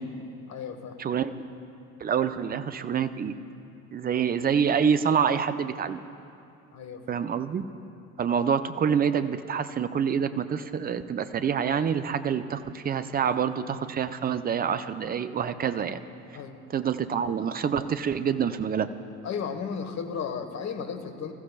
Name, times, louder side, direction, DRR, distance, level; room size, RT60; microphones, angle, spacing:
voice 1, 0.5-1.1 6.7-7.2 16.3-16.7 19.2-21.3, left 6 dB, 40° left, 7 dB, 1.5 m, -35 dB
voice 2, 1.0-1.3 2.0-3.3 3.9-6.0 7.1-7.6 8.2-16.0 16.7-18.9, right 7 dB, 20° right, 11 dB, 0.6 m, -26 dB
26.0 x 14.5 x 2.4 m, 2.7 s
figure-of-eight pair, 65°, 43 cm